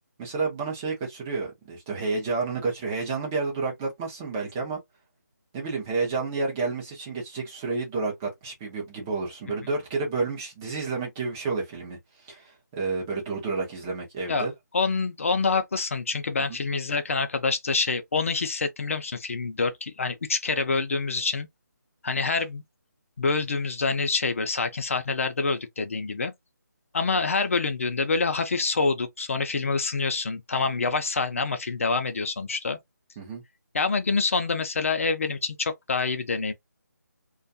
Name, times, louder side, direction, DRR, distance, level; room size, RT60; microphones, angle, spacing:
voice 1, 0.2-4.8 5.5-14.5 16.5-16.6 33.2-33.4, right 4 dB, 10° right, 0.5 m, -30 dB
voice 2, 14.7-21.5 22.0-22.6 23.2-26.3 26.9-32.8 33.7-36.5, left 4 dB, 45° left, 0.6 m, -26 dB
2.5 x 2.3 x 2.5 m
figure-of-eight pair, 170°, 10 cm